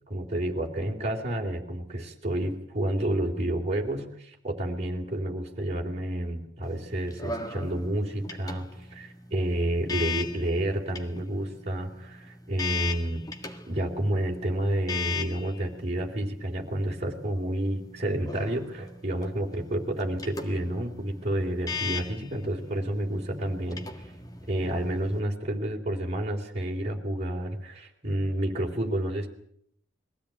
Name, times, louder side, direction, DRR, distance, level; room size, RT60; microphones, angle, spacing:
voice 1, 0.1-23.8 24.5-29.3, right 1 dB, 35° right, -1 dB, 3.8 m, -30 dB
sound 1, 6.6-25.2, left 5 dB, 20° left, 1.7 m, -39 dB
22.5 x 16.0 x 9.2 m, 0.69 s
head